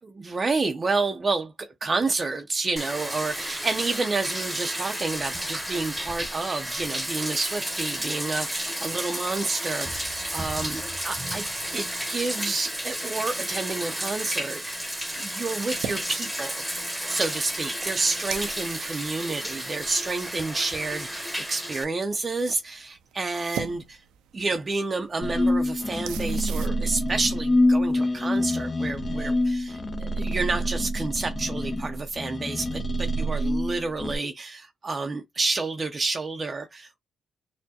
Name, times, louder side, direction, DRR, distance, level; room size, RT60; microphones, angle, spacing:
voice 1, 0.0-11.4 11.7-16.6 17.1-24.0 24.3-37.0, right 3 dB, 30° right, 0.5 m, -29 dB
Bathtub (filling or washing), 2.8-21.8, equal, 5° right, 1.0 m, -32 dB
sound 1, 12.5-26.7, right 9 dB, 85° right, 0.5 m, -43 dB
sound 2, 25.2-34.2, left 1 dB, 30° left, 0.5 m, -26 dB
4.4 x 2.1 x 2.8 m
cardioid pair, 90°, 0 cm